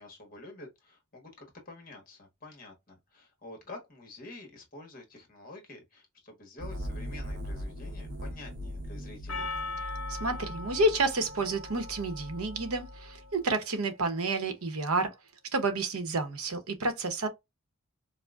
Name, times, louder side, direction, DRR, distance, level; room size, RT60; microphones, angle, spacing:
voice 1, 0.0-9.5, left 2 dB, 40° left, 1.3 m, -48 dB
sound 1, 6.6-13.4, equal, 50° right, 0.7 m, -40 dB
Percussion, 9.3-13.6, left 3 dB, 75° left, 0.6 m, -41 dB
voice 2, 10.1-15.1 15.5-17.3, right 2 dB, 90° right, 0.9 m, -30 dB
4.8 x 2.1 x 2.4 m
head